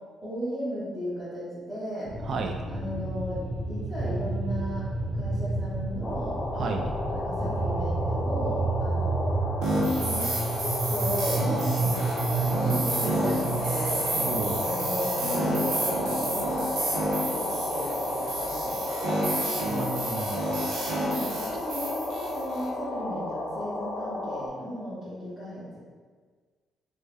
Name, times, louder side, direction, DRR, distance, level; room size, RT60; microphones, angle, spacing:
voice 1, 0.2-2.1 2.7-6.4 7.1-9.4 10.1-14.0 14.6-19.8 20.9-25.8, equal, 10° right, -14 dB, 1.0 m, -36 dB
sound 1, 2.0-16.6, right 2 dB, 20° left, 0.7 m, -31 dB
voice 2, 2.2-2.6 6.5-6.9 14.2-14.7 19.7-20.7, right 3 dB, 55° right, 4 dB, 0.3 m, -33 dB
sound 2, 6.0-24.5, left 2 dB, 40° left, 0.4 m, -33 dB
sound 3, 9.6-22.7, right 1 dB, 85° right, 0.7 m, -30 dB
3.3 x 2.1 x 3.3 m, 1.5 s
cardioid pair, 115°, 0 cm